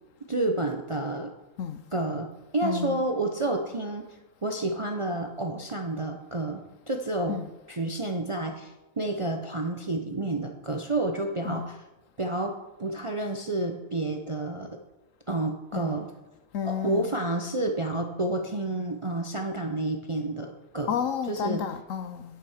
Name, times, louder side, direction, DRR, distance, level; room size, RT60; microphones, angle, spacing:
voice 1, 0.3-1.3 1.9-2.3 2.5-4.0 4.4-7.4 7.7-11.8 12.2-14.8 15.3-16.1 16.6-21.0 21.3-21.6, right 2 dB, 35° right, 0.5 m, -30 dB
voice 2, 2.6-3.0 7.3-7.5 11.4-11.7 15.7-16.0 16.5-17.1 20.9-22.3, left 8 dB, 65° left, 1.0 m, -31 dB
9.3 x 7.3 x 4.9 m
omnidirectional pair, 1.5 m